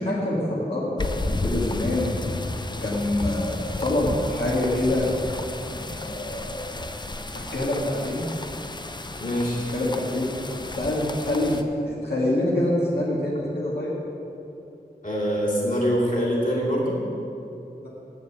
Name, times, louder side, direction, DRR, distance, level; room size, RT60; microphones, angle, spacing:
voice 1, 0.0-2.1 2.8-5.1 5.7-6.7 7.3-8.2 9.7-10.3 10.8-13.9, left 1 dB, 75° left, -8 dB, 1.8 m, -26 dB
sound 1, 1.0-11.6, left 2 dB, 25° left, 0.5 m, -32 dB
voice 2, 9.2-9.6 15.0-17.0, equal, 55° left, -5 dB, 2.7 m, -24 dB
8.3 x 7.0 x 8.1 m, 2.9 s
wide cardioid pair, 60°, 17 cm